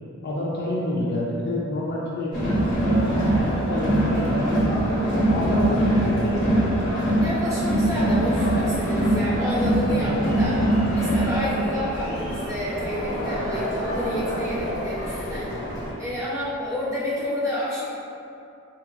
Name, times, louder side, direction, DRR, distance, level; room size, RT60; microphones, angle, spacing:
voice 1, 0.2-5.0 5.3-6.9 9.9-10.2, left 1 dB, 50° left, -5 dB, 0.5 m, -28 dB
Crowd, 2.3-15.9, right 1 dB, 20° left, 1.2 m, -23 dB
voice 2, 7.2-10.6 10.9-15.5 16.0-17.8, left 1 dB, 15° right, -14 dB, 1.2 m, -29 dB
3.6 x 2.8 x 2.4 m, 2.6 s
head